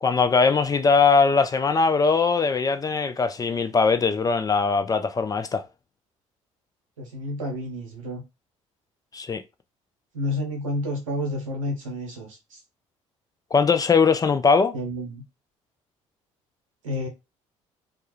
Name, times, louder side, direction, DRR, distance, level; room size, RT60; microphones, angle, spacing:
voice 1, 0.0-5.7 9.1-9.4 13.5-14.7, left 5 dB, 20° left, 0.3 m, -21 dB
voice 2, 7.0-8.2 10.1-12.6 14.7-15.2 16.8-17.1, left 1 dB, 85° right, 0.8 m, -30 dB
2.3 x 2.0 x 2.9 m
hypercardioid pair, 55°, 16 cm